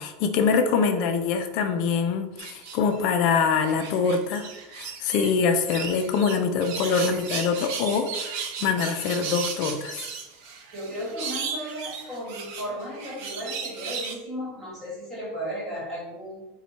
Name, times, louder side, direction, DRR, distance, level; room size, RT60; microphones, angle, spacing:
voice 1, 0.0-10.1, left 5 dB, 40° left, 7 dB, 0.4 m, -24 dB
sound 1, 2.4-3.1 3.6-5.3 5.7-14.2, right 6 dB, 45° right, 0.5 m, -35 dB
voice 2, 10.7-16.5, equal, 15° right, -6 dB, 1.5 m, -35 dB
4.5 x 2.2 x 4.1 m, 1.0 s
supercardioid pair, 180°, 0 cm